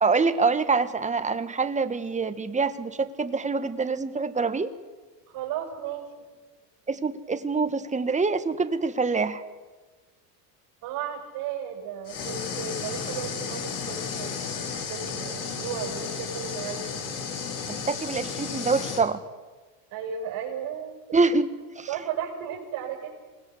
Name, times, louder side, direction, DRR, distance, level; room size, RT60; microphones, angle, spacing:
voice 1, 0.0-4.7 6.9-9.4 17.7-19.2 21.1-21.5 21.8-21.9, right 4 dB, 15° right, 10 dB, 1.8 m, -25 dB
voice 2, 5.3-6.1 10.8-14.3 14.9-17.0 19.9-21.2 21.9-23.1, right 8 dB, 55° right, 0 dB, 6.3 m, -34 dB
sound 1, 12.1-19.0, left 6 dB, 40° left, 4.9 m, -33 dB
27.0 x 20.0 x 8.2 m, 1.3 s
supercardioid pair, 100°, 46 cm